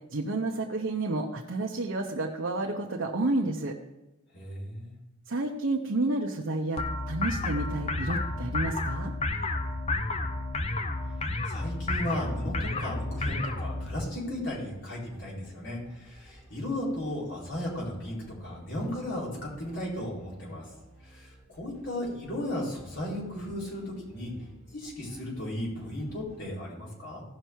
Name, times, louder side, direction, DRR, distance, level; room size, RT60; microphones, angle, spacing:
voice 1, 0.1-3.8 5.3-9.1, right 2 dB, 70° right, 1 dB, 1.0 m, -30 dB
voice 2, 4.3-4.9 11.5-20.7 21.0-27.2, left 1 dB, 60° left, -5 dB, 4.4 m, -35 dB
sound 1, 6.8-13.9, left 2 dB, 30° left, 0.8 m, -31 dB
sound 2, 13.2-26.4, right 1 dB, 5° left, 4.1 m, -55 dB
16.0 x 5.7 x 4.7 m, 1.0 s
head